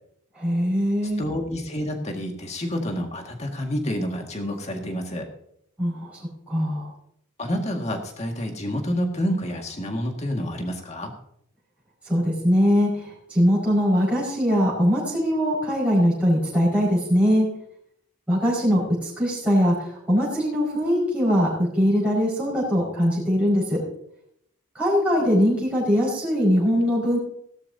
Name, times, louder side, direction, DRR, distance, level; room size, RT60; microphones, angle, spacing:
voice 1, 0.3-1.2 5.8-6.9 12.0-17.5 18.3-23.8 24.7-27.2, equal, 5° right, -7 dB, 5.0 m, -21 dB
voice 2, 1.2-5.3 7.4-11.1, equal, 30° left, 3 dB, 1.8 m, -28 dB
16.5 x 13.0 x 2.7 m, 0.71 s
head